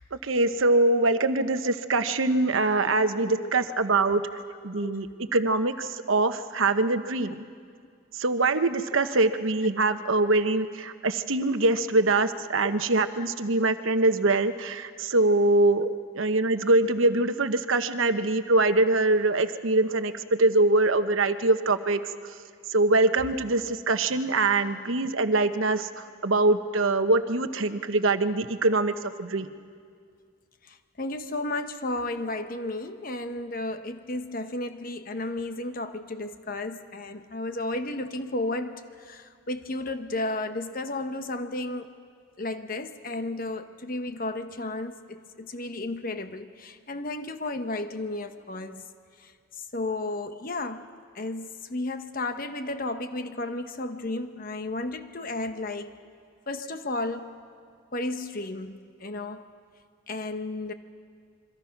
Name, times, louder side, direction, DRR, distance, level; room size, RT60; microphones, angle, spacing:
voice 1, 0.2-4.2 4.6-7.4 8.2-15.9 16.2-22.0 22.7-25.9 26.2-29.5, right 2 dB, 75° right, 1.0 m, -23 dB
voice 2, 3.1-3.7 4.3-4.4 4.7-5.0 6.8-6.9 12.6-12.7 13.2-13.3 15.8-15.9 30.7-38.8 39.1-41.9 42.4-48.8 49.2-49.3 49.6-50.9 51.1-55.9 56.5-57.3 57.9-59.4 60.1-60.7, left 2 dB, 45° left, 1.0 m, -33 dB
27.0 x 23.5 x 5.9 m
head